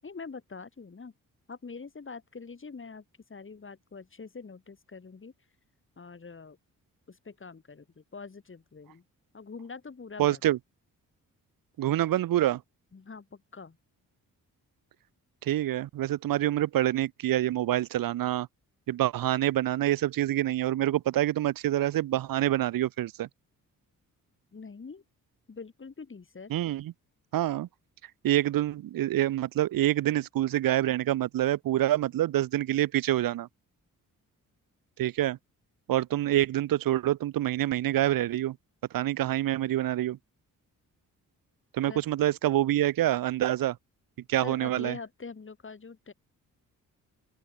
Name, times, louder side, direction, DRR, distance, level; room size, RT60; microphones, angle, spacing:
voice 1, 0.0-1.1 1.5-3.0 3.3-5.3 6.0-6.6 7.1-9.0 9.3-10.4 12.9-13.8 24.5-25.0 25.5-26.5 41.9-42.0 44.4-46.1, left 4 dB, 35° left, 7.8 m, -44 dB
voice 2, 10.2-10.6 11.8-12.6 15.4-18.5 18.9-23.3 26.5-26.9 27.3-27.7 28.2-33.5 35.0-35.4 35.9-38.6 38.9-40.2 41.7-43.8 44.3-45.0, right 13 dB, 85° right, 1.0 m, -26 dB
open air
cardioid pair, 85°, 34 cm